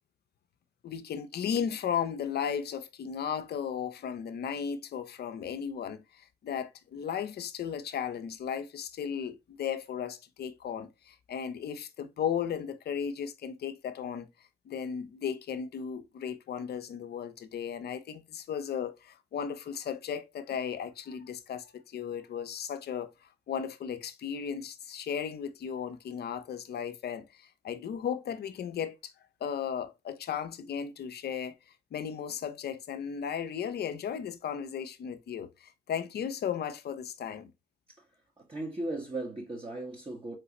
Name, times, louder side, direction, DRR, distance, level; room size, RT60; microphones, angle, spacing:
voice 1, 0.8-14.3 14.7-23.1 23.5-29.0 29.4-31.5 31.9-37.5, left 8 dB, 55° left, 0.6 m, -35 dB
voice 2, 38.4-40.4, right 2 dB, 25° right, 1.3 m, -37 dB
3.9 x 3.3 x 2.9 m
hypercardioid pair, 50°, 20 cm